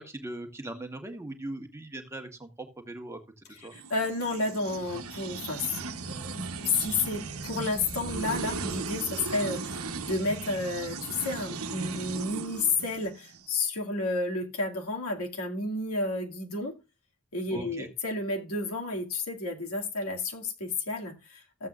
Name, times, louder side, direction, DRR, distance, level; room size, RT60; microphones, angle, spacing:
voice 1, 0.0-3.7 17.5-17.9, right 1 dB, 15° right, 1.6 m, -40 dB
sound 1, 3.7-13.4, right 4 dB, 85° right, 1.1 m, -37 dB
voice 2, 3.9-16.7 17.3-21.7, left 3 dB, 90° left, 2.4 m, -31 dB
14.5 x 7.9 x 2.5 m
head